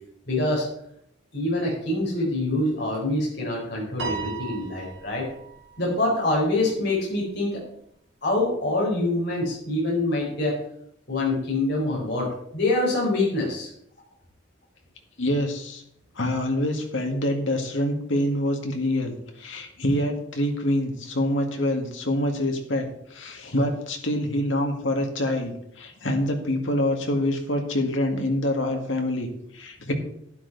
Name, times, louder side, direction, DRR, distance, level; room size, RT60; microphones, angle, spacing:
voice 1, 0.3-0.7 1.3-5.3 5.8-7.6 8.2-10.5 11.1-13.7, left 2 dB, 55° left, -4 dB, 4.4 m, -25 dB
Piano, 4.0-6.5, right 5 dB, 60° right, 3.4 m, -36 dB
voice 2, 15.2-15.8 16.1-29.9, left 1 dB, 70° left, 3 dB, 2.2 m, -26 dB
11.5 x 10.5 x 4.2 m, 0.71 s
head